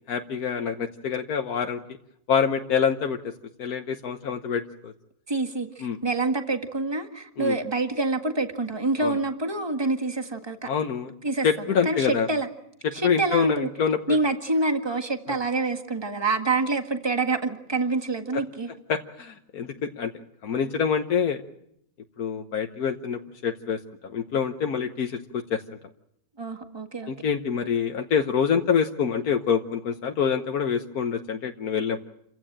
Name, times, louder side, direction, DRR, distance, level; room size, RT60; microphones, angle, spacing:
voice 1, 0.0-1.8 2.3-3.2 3.6-4.9 5.8-6.0 7.4-7.6 9.0-9.2 10.6-11.1 11.4-12.3 13.0-14.2 15.3-15.4 18.3-18.4 18.9-20.1 20.4-21.4 22.2-25.6 27.1-32.0, left 7 dB, 80° left, 5 dB, 1.6 m, -26 dB
voice 2, 5.3-10.7 11.2-11.5 11.9-12.5 12.9-13.7 14.1-18.7 26.4-27.1, right 3 dB, 15° right, 5 dB, 1.8 m, -26 dB
29.0 x 15.5 x 8.8 m, 0.76 s
omnidirectional pair, 1.6 m